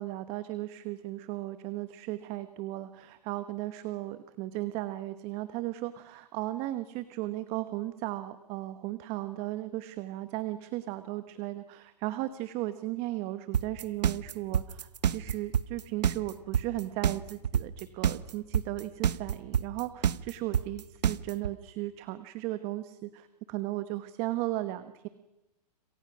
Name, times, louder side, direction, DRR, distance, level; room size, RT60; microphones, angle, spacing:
voice 1, 0.0-25.1, right 16 dB, 30° right, 12 dB, 1.0 m, -36 dB
sound 1, 13.5-21.5, right 8 dB, 90° right, 1.0 m, -26 dB
30.0 x 27.0 x 6.1 m, 0.99 s
hypercardioid pair, 150°, 21 cm